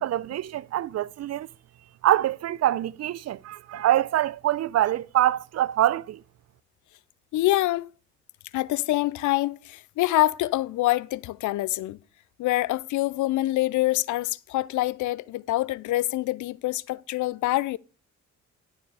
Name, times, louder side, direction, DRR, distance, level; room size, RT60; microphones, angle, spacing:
voice 1, 0.0-1.5 2.0-6.2, right 12 dB, 60° right, 0.5 m, -25 dB
voice 2, 7.3-7.9 8.5-12.0 12.4-17.8, left 16 dB, 75° left, 0.5 m, -25 dB
12.0 x 6.6 x 4.7 m
cardioid pair, 90°, 30 cm